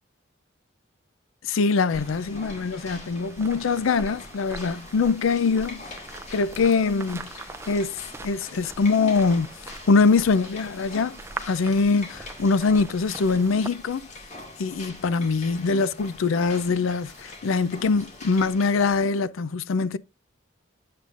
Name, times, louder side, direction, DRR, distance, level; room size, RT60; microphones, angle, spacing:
voice 1, 1.4-5.8 6.3-7.3 7.7-14.0 14.6-20.0, left 4 dB, 85° left, 0.5 m, -23 dB
sound 1, 1.9-19.0, left 2 dB, 35° left, 2.0 m, -44 dB
sound 2, 1.9-13.7, right 3 dB, 15° right, 0.3 m, -42 dB
8.5 x 6.6 x 2.5 m
head